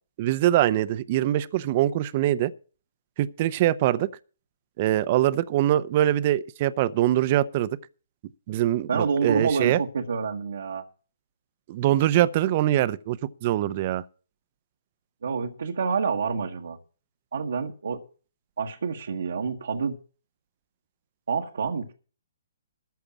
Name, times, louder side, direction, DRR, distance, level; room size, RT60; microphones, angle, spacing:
voice 1, 0.2-2.5 3.2-4.1 4.8-7.7 8.5-9.8 11.7-14.0, right 13 dB, 40° right, 0.8 m, -23 dB
voice 2, 8.9-10.8 15.2-16.8 17.3-18.0 18.6-20.0 21.3-21.9, right 5 dB, 70° right, 1.4 m, -27 dB
14.0 x 5.7 x 8.6 m
figure-of-eight pair, 135°, 0 cm